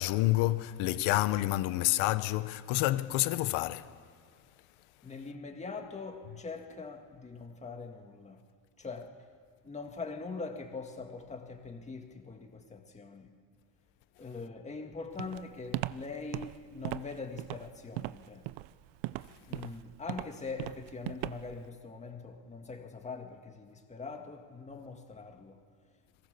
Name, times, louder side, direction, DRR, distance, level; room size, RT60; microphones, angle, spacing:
voice 1, 0.0-4.1 19.3-19.5, left 17 dB, 80° left, 1.2 m, -29 dB
voice 2, 5.0-8.4 8.8-9.3 9.6-13.3 14.2-18.5 19.5-26.0, left 4 dB, 15° left, 2.0 m, -43 dB
Walk footsteps, 15.2-21.6, right 18 dB, 80° right, 0.7 m, -38 dB
29.5 x 22.5 x 6.9 m
cardioid pair, 160°, 47 cm